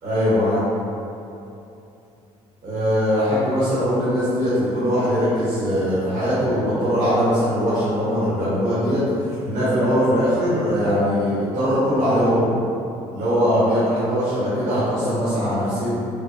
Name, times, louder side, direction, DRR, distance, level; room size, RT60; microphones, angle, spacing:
voice 1, 0.0-0.6 2.6-9.0 9.4-12.5 13.1-15.9, equal, 60° right, -12 dB, 1.2 m, -21 dB
3.3 x 2.1 x 3.1 m, 2.8 s
hypercardioid pair, 60°, 15 cm